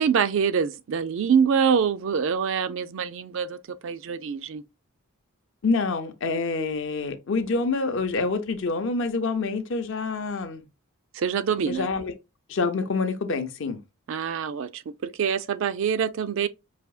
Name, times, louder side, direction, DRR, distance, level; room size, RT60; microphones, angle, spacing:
voice 1, 0.0-4.6 11.1-11.9 14.1-16.5, right 7 dB, 60° right, 0.3 m, -25 dB
voice 2, 5.6-10.6 11.7-12.1 12.5-13.8, left 4 dB, 55° left, 0.6 m, -27 dB
4.9 x 2.7 x 2.3 m
head